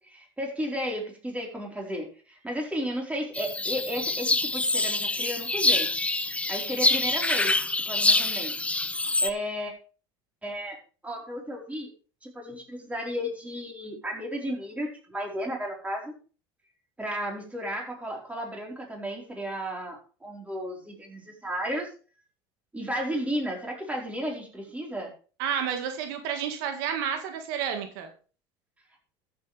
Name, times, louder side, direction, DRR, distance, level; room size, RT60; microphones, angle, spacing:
voice 1, 0.1-5.9 6.5-8.5 9.2-9.7 10.4-10.8 11.0-11.9 12.2-16.1 17.0-21.9 22.7-25.1, equal, 10° right, 0 dB, 4.4 m, -33 dB
sound 1, 3.3-9.3, left 2 dB, 10° left, 0.8 m, -26 dB
voice 2, 25.4-28.1, right 8 dB, 85° right, 5 dB, 1.9 m, -30 dB
13.5 x 8.0 x 3.4 m, 0.37 s
supercardioid pair, 105°, 12 cm